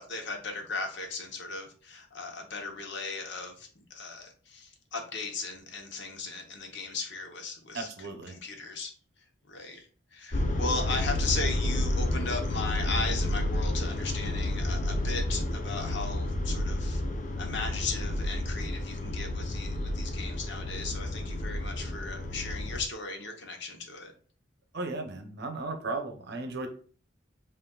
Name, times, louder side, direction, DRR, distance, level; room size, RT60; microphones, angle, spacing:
voice 1, 0.0-8.9 9.5-17.0 17.4-24.1, left 3 dB, 65° left, 4 dB, 0.9 m, -37 dB
voice 2, 7.7-8.4 24.7-26.7, right 3 dB, 60° right, 5 dB, 0.8 m, -35 dB
sound 1, 10.3-22.8, left 1 dB, 40° left, 0.6 m, -30 dB
7.5 x 2.5 x 2.3 m, 0.42 s
head